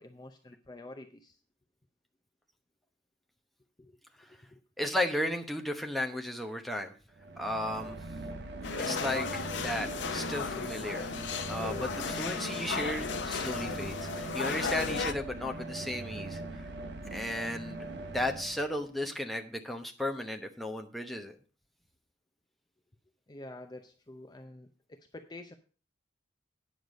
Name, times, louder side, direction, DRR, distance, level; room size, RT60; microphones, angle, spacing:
voice 1, 0.0-1.4 3.8-3.9 4.3-4.6 23.3-25.5, left 2 dB, 20° left, 6 dB, 0.6 m, -48 dB
voice 2, 4.8-6.9 7.4-8.0 8.8-9.9 10.1-11.1 11.5-16.6 17.1-21.4, left 1 dB, ahead, 3 dB, 0.9 m, -35 dB
sound 1, 7.1-19.0, right 2 dB, 60° right, 1.1 m, -41 dB
sound 2, 8.6-15.1, left 5 dB, 65° left, 0.7 m, -35 dB
9.4 x 6.6 x 5.2 m, 0.38 s
head